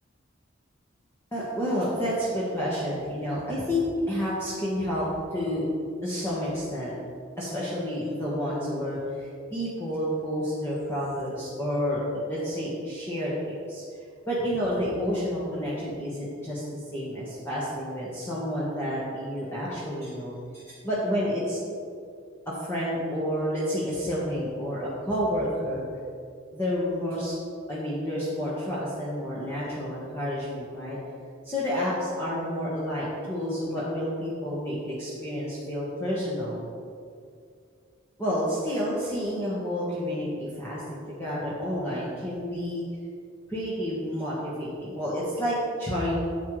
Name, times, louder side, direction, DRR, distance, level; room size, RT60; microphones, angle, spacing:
voice 1, 1.3-5.1 5.3-5.7 6.0-6.9 7.4-13.8 14.3-21.6 22.4-25.8 26.5-27.4 27.7-31.0 31.4-36.6 38.2-42.8 43.5-46.2, equal, 15° left, -8 dB, 1.5 m, -30 dB
11.5 x 7.6 x 3.3 m, 2.3 s
head